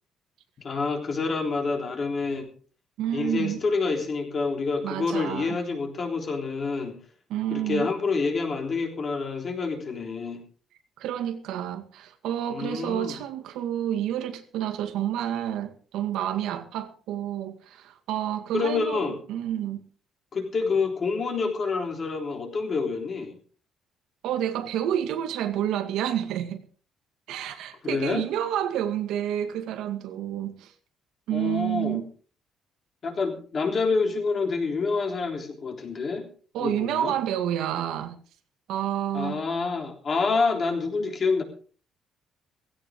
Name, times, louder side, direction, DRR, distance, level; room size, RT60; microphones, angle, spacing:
voice 1, 0.6-2.5 3.1-7.0 7.5-10.4 12.5-13.2 18.5-19.2 20.3-23.4 27.8-28.2 31.3-32.0 33.0-36.3 36.6-37.1 39.1-41.4, left 4 dB, 30° left, 3.5 m, -27 dB
voice 2, 3.0-3.6 4.8-5.6 7.3-7.9 11.0-19.8 24.2-26.6 27.3-30.7 31.3-32.1 36.5-38.2 38.7-39.4, right 11 dB, 80° right, 2.1 m, -29 dB
17.5 x 16.0 x 3.8 m
cardioid pair, 170°, 0 cm